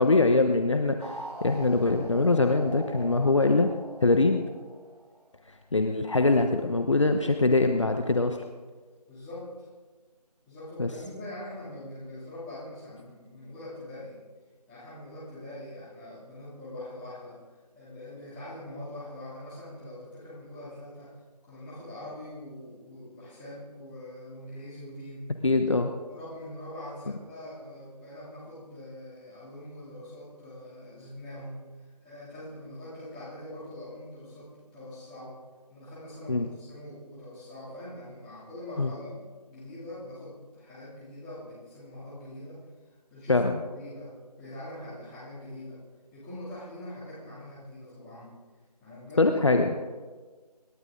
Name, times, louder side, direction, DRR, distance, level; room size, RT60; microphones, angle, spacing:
voice 1, 0.0-3.7 4.0-4.4 5.7-8.4 10.8-10.9 25.4-25.9 36.3-36.5 38.8-38.9 43.3-43.5 49.2-49.7, left 3 dB, 45° left, 6 dB, 1.1 m, -23 dB
sound 1, 1.0-5.5, right 1 dB, 70° right, 4.6 m, -42 dB
voice 2, 9.1-9.7 10.5-14.2 14.7-17.4 17.7-21.1 21.4-25.3 26.1-35.3 35.7-39.1 39.5-42.7 43.1-44.1 44.4-45.8 46.1-48.3 48.8-49.3, left 1 dB, 5° left, -10 dB, 3.0 m, -43 dB
26.5 x 12.0 x 3.9 m, 1.4 s
figure-of-eight pair, 170°, 21 cm